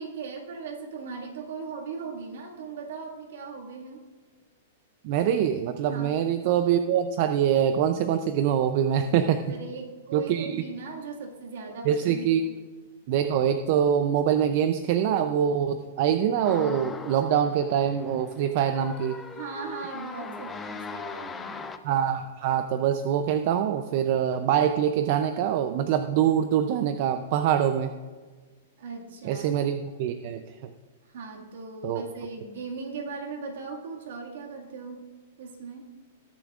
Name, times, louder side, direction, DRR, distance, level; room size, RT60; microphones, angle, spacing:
voice 1, 0.0-4.1 5.9-6.2 9.0-9.1 9.5-12.5 19.3-21.6 28.8-29.5 31.0-35.0 35.4-35.9, right 4 dB, 75° right, 0 dB, 2.0 m, -38 dB
voice 2, 5.0-9.4 10.1-10.6 11.9-12.5 13.1-19.2 21.8-27.9 29.2-30.4 31.8-32.0, right 9 dB, 45° right, 8 dB, 0.5 m, -24 dB
sound 1, 16.4-21.8, left 4 dB, 10° left, 0.5 m, -39 dB
20.5 x 6.9 x 2.5 m, 1.3 s
hypercardioid pair, 155°, 0 cm